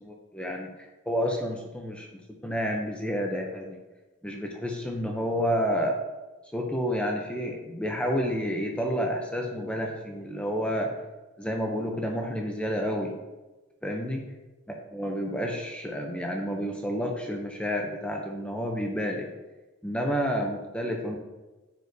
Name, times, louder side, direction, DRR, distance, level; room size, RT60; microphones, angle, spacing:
voice 1, 0.0-0.7 1.1-2.1 2.4-3.8 4.2-6.0 6.5-10.9 11.4-13.1 13.8-14.2 14.7-19.3 19.8-21.2, equal, 5° left, 1 dB, 0.5 m, -30 dB
8.8 x 4.7 x 2.7 m, 1.1 s
head